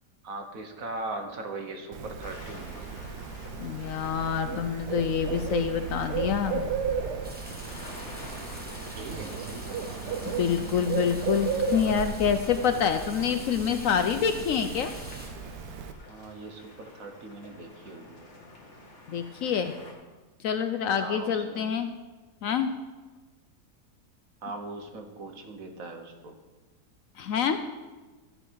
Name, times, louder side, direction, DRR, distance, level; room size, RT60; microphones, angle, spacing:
voice 1, 0.2-2.8 9.0-10.2 16.1-18.3 21.0-21.8 24.4-26.4, right 2 dB, 60° right, 5 dB, 1.5 m, -40 dB
Bird, 1.9-15.9, right 6 dB, 85° right, 1.4 m, -35 dB
sound 1, 2.2-19.9, left 2 dB, 45° left, 2.0 m, -47 dB
voice 2, 3.6-6.6 10.3-14.9 19.1-19.7 20.4-21.9 22.4-22.7 27.2-27.6, left 7 dB, 65° left, 8 dB, 0.9 m, -27 dB
sound 2, 7.2-15.3, equal, 5° right, 1.4 m, -46 dB
13.0 x 7.9 x 4.6 m, 1.2 s
omnidirectional pair, 1.7 m